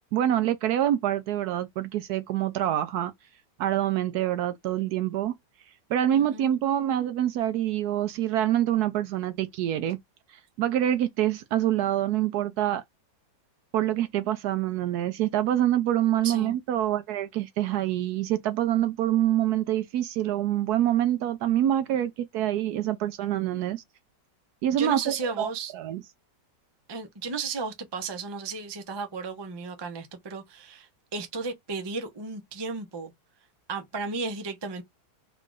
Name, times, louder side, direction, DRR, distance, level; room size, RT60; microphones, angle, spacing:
voice 1, 0.1-3.1 3.6-5.3 5.9-10.0 10.6-12.8 13.7-23.8 24.6-26.0, right 12 dB, 70° right, 1.0 m, -26 dB
voice 2, 6.1-6.5 16.2-16.6 24.8-25.7 26.9-33.1 33.7-34.8, right 4 dB, 40° right, 0.3 m, -34 dB
3.7 x 2.4 x 3.7 m
omnidirectional pair, 1.9 m